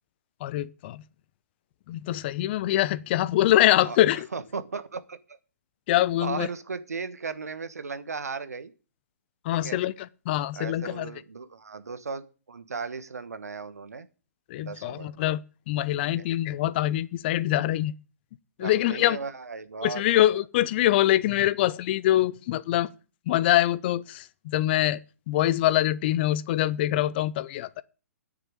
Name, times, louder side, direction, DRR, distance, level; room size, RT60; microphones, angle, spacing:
voice 1, 0.4-1.0 1.9-4.3 5.9-6.5 9.4-9.9 10.3-11.1 14.5-17.9 18.6-19.2 19.8-22.9 23.3-25.0 25.3-27.8, left 14 dB, 40° left, 0.7 m, -24 dB
voice 2, 4.3-5.4 6.2-8.7 9.5-9.8 10.5-14.1 14.6-15.2 16.2-16.3 18.6-20.1, right 4 dB, 80° right, 1.3 m, -36 dB
10.0 x 6.7 x 9.0 m
figure-of-eight pair, 125°, 8 cm